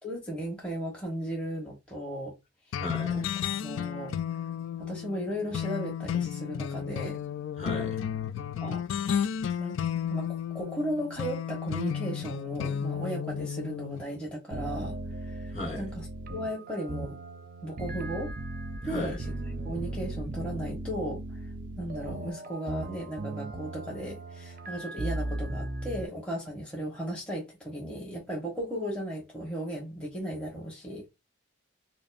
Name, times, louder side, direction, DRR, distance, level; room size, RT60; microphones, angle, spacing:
voice 1, 0.0-2.3 3.1-3.3 3.6-4.1 4.8-7.2 8.6-8.8 9.6-9.7 10.1-14.9 15.3-17.2 17.6-18.3 18.8-19.3 19.6-21.4 21.8-31.0, equal, 5° left, 1.1 m, -36 dB
sound 1, 2.7-14.0, left 8 dB, 90° left, 0.3 m, -33 dB
voice 2, 2.8-3.2 7.6-8.0 15.5-15.8 18.8-19.2, left 1 dB, 40° left, 1.5 m, -35 dB
sound 2, 14.5-26.1, right 1 dB, 45° right, 0.5 m, -37 dB
5.1 x 2.0 x 2.4 m
head